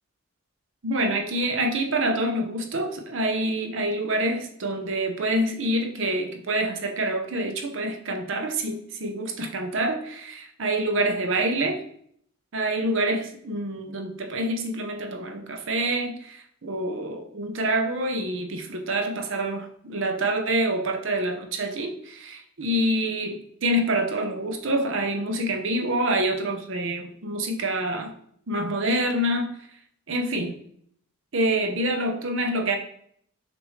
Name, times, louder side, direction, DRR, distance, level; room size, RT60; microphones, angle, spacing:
voice 1, 0.8-11.8 12.5-28.1 28.5-29.5 30.1-30.6 31.3-32.8, right 1 dB, 60° right, 5 dB, 0.7 m, -26 dB
6.1 x 2.6 x 3.2 m, 0.65 s
head